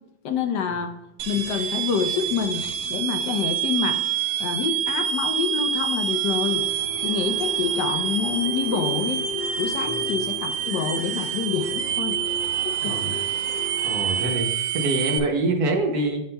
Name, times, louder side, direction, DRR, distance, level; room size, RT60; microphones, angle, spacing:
voice 1, 0.2-0.9 1.3-2.6 2.9-4.0 4.4-6.6 7.0-9.2 9.6-12.2 12.6-13.2, left 6 dB, 70° left, 5 dB, 1.1 m, -27 dB
sound 1, 1.2-15.2, right 9 dB, 85° right, 0.7 m, -27 dB
sound 2, 6.4-14.4, left 4 dB, 50° left, 1.5 m, -36 dB
voice 2, 12.8-13.2 13.8-16.2, right 2 dB, 60° right, 2 dB, 1.2 m, -25 dB
9.4 x 5.6 x 2.2 m, 0.90 s
omnidirectional pair, 2.1 m